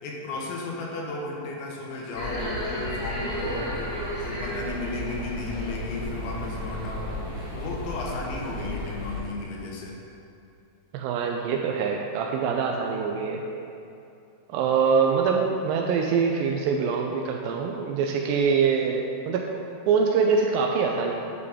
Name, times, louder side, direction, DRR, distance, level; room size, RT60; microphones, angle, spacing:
voice 1, 0.0-3.9 4.2-7.2 7.5-10.0, left 3 dB, 80° left, -2 dB, 2.9 m, -34 dB
sound 1, 2.1-9.2, equal, 40° left, 1.1 m, -33 dB
voice 2, 10.9-13.4 14.5-19.4 19.9-21.2, right 5 dB, 80° right, 1 dB, 2.2 m, -24 dB
8.6 x 6.8 x 3.5 m, 2.7 s
omnidirectional pair, 4.4 m